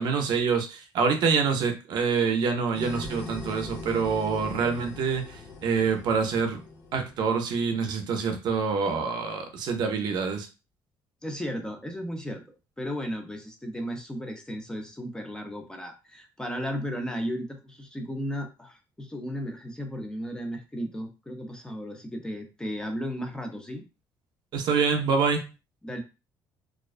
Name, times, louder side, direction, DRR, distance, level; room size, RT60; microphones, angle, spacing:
voice 1, 0.0-6.6 6.9-10.5 24.5-25.5, right 5 dB, 60° right, 6 dB, 0.5 m, -26 dB
sound 1, 2.7-7.6, left 3 dB, 60° left, 0.7 m, -41 dB
voice 2, 11.2-23.8 25.8-26.0, equal, 10° left, 4 dB, 0.4 m, -35 dB
2.3 x 2.2 x 2.4 m, 0.28 s
cardioid pair, 140°, 8 cm